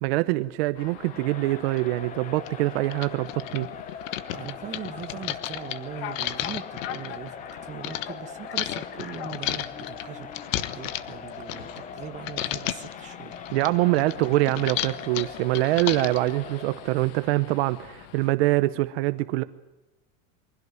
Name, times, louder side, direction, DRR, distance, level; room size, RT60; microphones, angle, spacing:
voice 1, 0.0-3.7 13.5-19.4, right 19 dB, 55° right, 13 dB, 0.9 m, -24 dB
sound 1, 0.7-18.3, left 9 dB, 50° left, 2.2 m, -46 dB
Crowd, 0.9-17.1, left 7 dB, 20° left, 1.1 m, -41 dB
sound 2, 1.8-1.9 2.5-2.6 2.8-8.1 8.6-12.0 12.3-12.9 13.3-16.3, left 13 dB, 90° left, 1.5 m, -33 dB
voice 2, 4.3-13.4 18.2-18.3, right 8 dB, 20° right, 6 dB, 1.5 m, -40 dB
24.0 x 17.0 x 9.3 m, 1.0 s
supercardioid pair, 175°, 38 cm